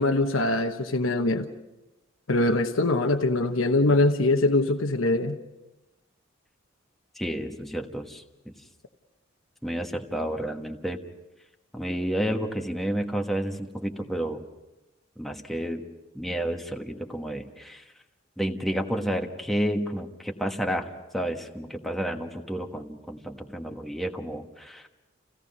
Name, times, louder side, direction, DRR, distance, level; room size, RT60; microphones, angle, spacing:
voice 1, 0.0-1.5 2.3-5.4, left 2 dB, 85° left, 6 dB, 1.1 m, -23 dB
voice 2, 7.1-8.5 9.6-11.0 11.7-14.4 15.2-15.8 16.1-17.9 18.4-24.9, right 1 dB, ahead, 3 dB, 1.3 m, -31 dB
28.5 x 17.0 x 5.4 m, 1.0 s
head